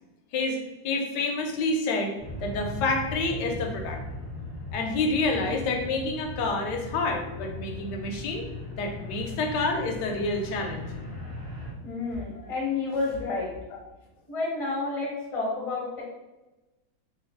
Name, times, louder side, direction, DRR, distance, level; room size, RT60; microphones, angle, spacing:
voice 1, 0.8-2.1 2.4-4.0 4.7-8.5 8.8-10.9 12.3-12.5, left 3 dB, 75° left, 2 dB, 1.1 m, -28 dB
sound 1, 2.2-11.7, left 2 dB, 25° right, 1.2 m, -38 dB
voice 2, 11.8-13.5 14.3-16.0, left 3 dB, 25° left, -4 dB, 0.7 m, -30 dB
3.1 x 2.9 x 3.5 m, 1.1 s
omnidirectional pair, 2.0 m